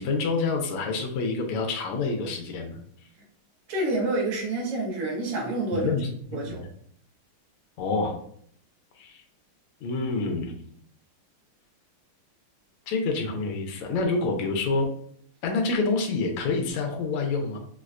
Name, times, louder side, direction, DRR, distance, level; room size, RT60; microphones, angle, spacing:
voice 1, 0.0-2.8 5.7-6.7 7.8-8.1 9.0-9.2 9.8-10.5 12.9-14.9 15.4-17.6, left 3 dB, 90° left, 2 dB, 1.5 m, -27 dB
voice 2, 3.7-5.9 6.3-6.6, right 2 dB, 80° right, -2 dB, 1.9 m, -28 dB
4.5 x 2.1 x 2.4 m, 0.64 s
omnidirectional pair, 2.4 m